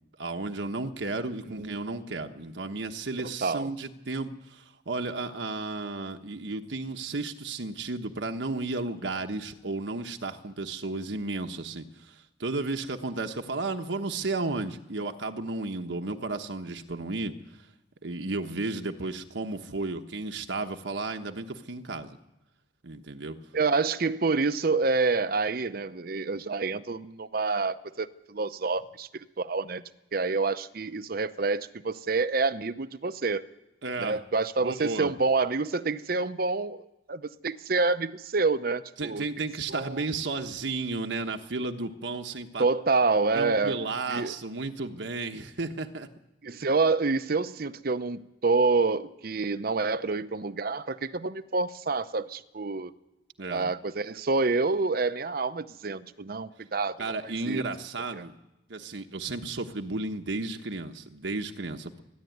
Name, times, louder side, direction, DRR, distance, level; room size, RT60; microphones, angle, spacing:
voice 1, 0.2-17.3 18.0-22.2 22.8-23.4 33.8-34.2 34.6-35.1 39.0-42.7 43.3-46.1 53.4-53.7 57.0-58.4 58.7-62.0, right 3 dB, 80° right, 1.2 m, -33 dB
voice 2, 1.5-1.8 3.2-3.7 23.5-29.8 30.1-33.4 34.0-39.3 39.7-40.0 42.6-43.8 44.1-44.3 46.4-52.9 53.5-57.6 58.1-58.3, right 3 dB, 50° right, 0.7 m, -28 dB
27.0 x 10.5 x 9.3 m
head